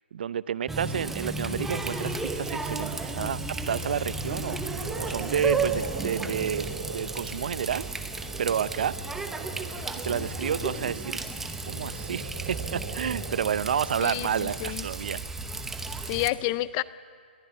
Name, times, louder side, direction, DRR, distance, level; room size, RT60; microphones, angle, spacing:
voice 1, 0.1-3.4 3.7-7.9 8.4-9.0 9.9-11.4 11.7-15.2, right 8 dB, 60° right, 18 dB, 0.6 m, -30 dB
Water tap faucet, 0.7-16.3, right 3 dB, 5° right, 0.9 m, -33 dB
Frog, 4.8-10.8 11.6-14.1, right 4 dB, 30° right, 1.9 m, -42 dB
voice 2, 14.0-14.9 16.1-16.8, left 18 dB, 25° left, 18 dB, 0.4 m, -29 dB
22.0 x 15.0 x 8.5 m, 2.2 s
hypercardioid pair, 145°, 6 cm